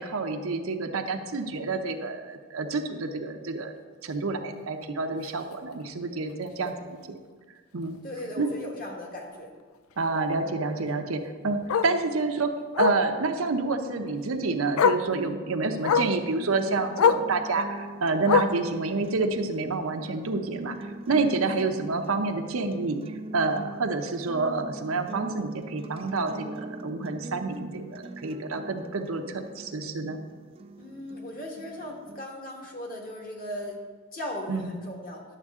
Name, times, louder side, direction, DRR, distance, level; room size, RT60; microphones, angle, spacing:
voice 1, 0.0-3.7 4.0-6.7 7.7-8.0 8.4-8.5 10.0-20.8 21.1-23.0 23.3-30.2 34.5-34.7, right 3 dB, 80° right, 5 dB, 0.8 m, -28 dB
Bark, 5.2-5.4 5.8-5.9 6.3-6.4 6.7-6.8 8.2-8.3 10.8-10.9 11.7-12.0 12.7-13.1 14.2-14.3 14.8-15.1 15.8-16.2 17.0-17.3 18.2-18.7 19.7-19.8, left 6 dB, 75° left, 0.3 m, -23 dB
voice 2, 8.0-9.5 10.4-10.5 21.4-21.7 30.8-33.8 34.1-35.2, left 1 dB, 40° left, 0 dB, 1.5 m, -38 dB
sound 1, 16.3-32.3, right 2 dB, 25° right, 0.3 m, -42 dB
11.0 x 7.4 x 3.6 m, 1.5 s
head